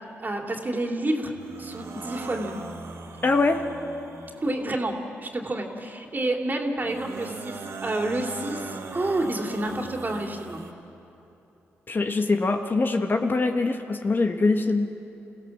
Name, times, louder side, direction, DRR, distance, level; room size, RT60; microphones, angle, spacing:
voice 1, 0.2-1.3 1.6-2.6 4.4-10.6, right 1 dB, 35° right, 2 dB, 3.0 m, -29 dB
sound 1, 1.4-4.8 6.8-10.7, right 4 dB, 65° right, 2.1 m, -39 dB
voice 2, 3.2-3.6 11.9-14.9, left 3 dB, 40° left, 5 dB, 1.5 m, -23 dB
28.0 x 16.0 x 7.3 m, 3.0 s
supercardioid pair, 50°, 5 cm